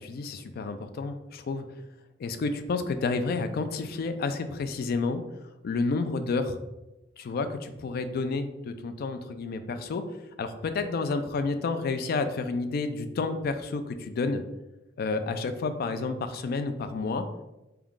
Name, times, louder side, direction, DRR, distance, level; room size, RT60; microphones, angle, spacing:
voice 1, 0.0-1.7 2.2-5.2 5.6-6.6 7.2-10.1 10.4-14.4 15.0-17.3, left 3 dB, 55° left, 9 dB, 0.3 m, -30 dB
3.5 x 2.3 x 3.6 m, 0.99 s
head